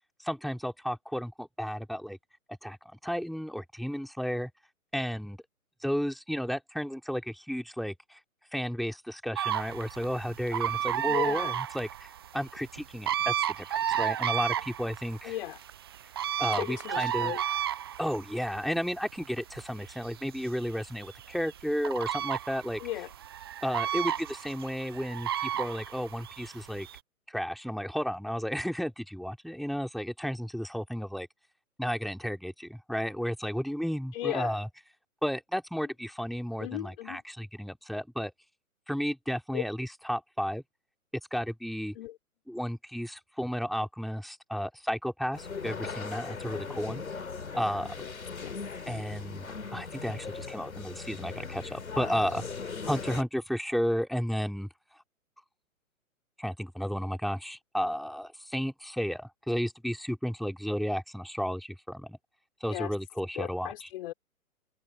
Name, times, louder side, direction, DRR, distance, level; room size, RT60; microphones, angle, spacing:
voice 1, 0.2-2.2 2.6-2.8 3.0-4.5 4.9-5.4 5.8-8.2 8.5-15.3 16.4-17.3 18.0-22.8 23.6-26.9 27.3-31.3 31.8-34.7 35.2-38.3 38.9-40.6 41.3-42.0 42.5-47.0 47.5-47.9 48.9-49.5 49.7-52.4 52.8-54.7 56.4-62.2 62.6-63.9, equal, ahead, 3.6 m, -33 dB
sound 1, 9.4-27.0, right 10 dB, 20° right, 0.5 m, -33 dB
voice 2, 11.1-11.6 15.2-15.6 16.6-17.4 22.8-23.1 34.1-34.6 36.6-37.2 39.5-39.6 41.9-42.2 48.0-48.1 48.4-48.6 62.7-62.9 63.3-64.1, left 14 dB, 40° left, 5.1 m, -36 dB
sound 2, 45.3-53.2, left 5 dB, 70° left, 3.5 m, -39 dB
figure-of-eight pair, 125°, 43 cm